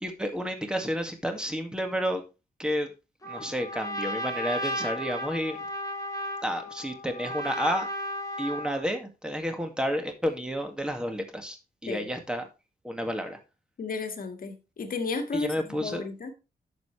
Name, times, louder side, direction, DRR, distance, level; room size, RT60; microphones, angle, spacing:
voice 1, 0.0-2.2 2.6-2.9 3.3-5.6 6.4-7.9 8.4-11.6 11.8-12.5 12.8-13.4 15.3-16.0, equal, 5° right, 2.0 m, -30 dB
Trumpet, 3.2-8.9, equal, 20° left, 2.5 m, -34 dB
voice 2, 13.8-16.3, left 3 dB, 60° left, 1.8 m, -33 dB
10.5 x 7.0 x 3.3 m
wide cardioid pair, 105°, 16 cm